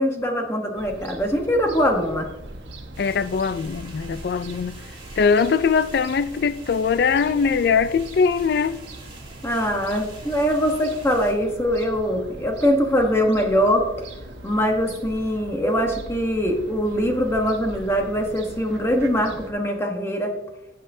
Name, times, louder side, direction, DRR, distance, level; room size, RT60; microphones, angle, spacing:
voice 1, 0.0-2.3 9.4-13.9 14.4-20.3, equal, 15° left, 1.0 m, -22 dB
Fowl / Gull seagull, 0.8-19.5, right 1 dB, 85° right, 1.1 m, -41 dB
sound 1, 2.9-11.3, right 3 dB, 30° right, 2.4 m, -46 dB
voice 2, 3.0-4.8 5.2-8.8, left 5 dB, 60° left, 0.3 m, -21 dB
16.0 x 5.6 x 2.7 m
head